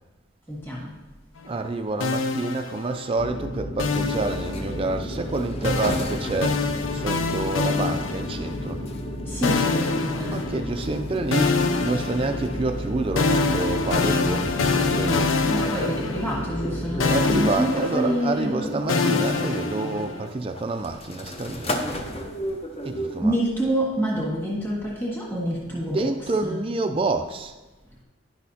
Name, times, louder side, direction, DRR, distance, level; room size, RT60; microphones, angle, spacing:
voice 1, 0.5-0.9 9.2-10.5 15.4-18.7 23.2-26.1 26.4-26.6, right 1 dB, 10° left, -5 dB, 1.5 m, -27 dB
voice 2, 1.4-6.6 6.9-8.8 10.3-15.3 17.1-21.8 22.8-23.4 25.6-27.5, right 2 dB, 25° right, 6 dB, 0.3 m, -28 dB
sound 1, 2.0-3.2 3.8-5.0 5.6-8.7 9.4-11.0 11.3-16.7 17.0-20.3, left 4 dB, 75° left, 0.5 m, -26 dB
sound 2, 3.2-17.5, left 1 dB, 55° left, 1.5 m, -33 dB
sound 3, 4.2-23.2, equal, 30° left, 0.6 m, -37 dB
10.5 x 6.2 x 2.8 m, 1.2 s
head